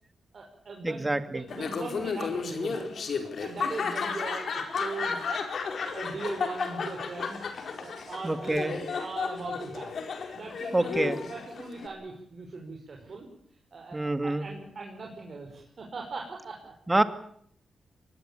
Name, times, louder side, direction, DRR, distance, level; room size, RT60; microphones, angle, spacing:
voice 1, 0.3-3.0 3.4-4.5 4.7-5.2 5.9-7.4 7.8-9.9 10.3-13.3 13.7-16.7, right 3 dB, 50° right, 0 dB, 5.8 m, -39 dB
voice 2, 0.8-1.4 8.2-8.7 10.7-11.2 13.9-14.5 16.9-17.0, right 2 dB, 15° right, 10 dB, 2.2 m, -26 dB
Laughter, 1.5-11.9, left 5 dB, 65° left, 4.5 m, -33 dB
24.5 x 20.0 x 8.8 m, 0.65 s
cardioid pair, 90°, 0 cm